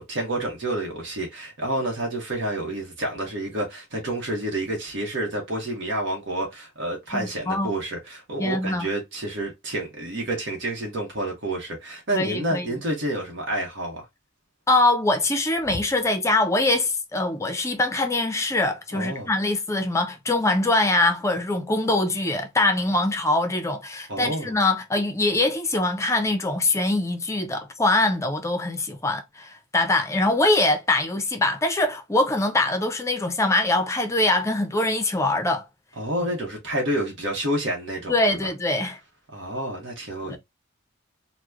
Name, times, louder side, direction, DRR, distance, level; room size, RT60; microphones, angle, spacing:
voice 1, 0.0-14.0 15.7-15.8 18.9-19.3 24.1-24.5 36.0-38.1 39.3-40.4, right 1 dB, 60° right, 1.1 m, -29 dB
voice 2, 7.1-7.7 8.4-8.9 12.1-12.7 14.7-35.6 38.1-39.0 40.2-40.4, left 2 dB, 15° left, 0.5 m, -23 dB
2.9 x 2.1 x 3.4 m
head